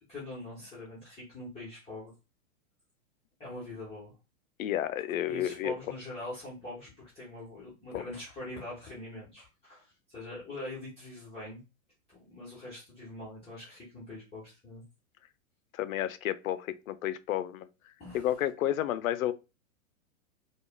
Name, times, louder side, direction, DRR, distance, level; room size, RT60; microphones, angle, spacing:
voice 1, 0.1-2.1 3.4-4.1 5.3-11.6 12.1-14.8 18.0-18.3, left 1 dB, 15° left, 1.3 m, -43 dB
voice 2, 4.6-5.7 7.9-8.0 15.7-17.7 18.1-19.3, left 12 dB, 75° left, 0.6 m, -31 dB
4.6 x 2.4 x 2.3 m
hypercardioid pair, 130°, 41 cm